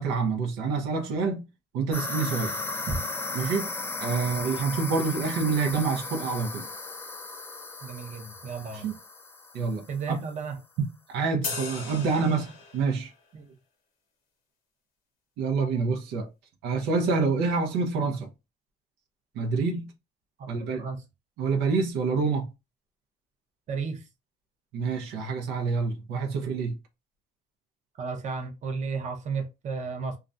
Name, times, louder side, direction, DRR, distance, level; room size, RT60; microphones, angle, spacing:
voice 1, 0.0-1.5 1.7-2.6 3.3-3.7 4.0-6.7 8.8-8.9 9.5-10.2 10.8-13.1 15.4-16.3 16.6-18.3 19.3-19.9 20.5-20.9 21.4-22.5 24.7-26.8, right 4 dB, 90° right, 0.6 m, -27 dB
sound 1, 1.9-10.1, left 3 dB, 15° left, 0.3 m, -36 dB
voice 2, 7.8-8.9 9.9-10.6 13.3-13.4 20.4-21.0 23.7-24.1 27.9-30.2, right 4 dB, 45° right, 0.7 m, -33 dB
sound 2, 11.4-13.1, left 4 dB, 55° left, 0.8 m, -37 dB
2.4 x 2.1 x 2.5 m
cardioid pair, 110°, 17 cm